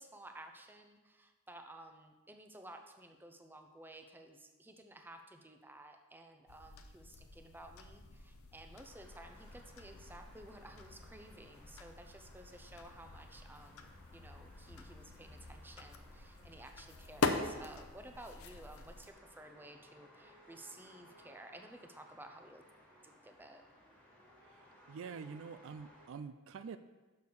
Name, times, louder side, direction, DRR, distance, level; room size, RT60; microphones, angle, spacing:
voice 1, 0.0-22.6 23.0-23.6, right 1 dB, 10° right, 5 dB, 0.6 m, -54 dB
sound 1, 6.5-19.1, left 3 dB, 75° left, 0.7 m, -43 dB
sound 2, 8.8-26.1, equal, 5° left, 1.6 m, -62 dB
voice 2, 24.4-26.8, right 5 dB, 65° right, 11 dB, 0.3 m, -47 dB
6.8 x 6.3 x 5.4 m, 1.2 s
head